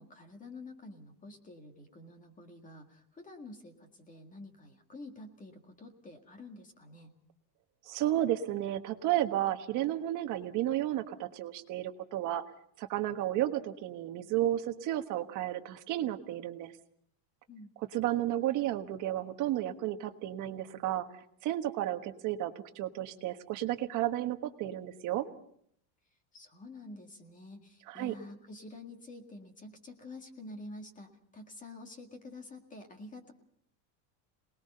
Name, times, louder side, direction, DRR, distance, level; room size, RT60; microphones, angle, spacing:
voice 1, 0.0-7.1 17.5-17.7 26.3-33.3, left 2 dB, 15° left, 5 dB, 1.9 m, -48 dB
voice 2, 7.8-12.4 12.8-16.7 17.9-21.1 21.4-25.3 27.9-28.1, right 13 dB, 40° right, 7 dB, 1.4 m, -32 dB
27.5 x 20.0 x 5.5 m, 0.66 s
cardioid pair, 170°, 50 cm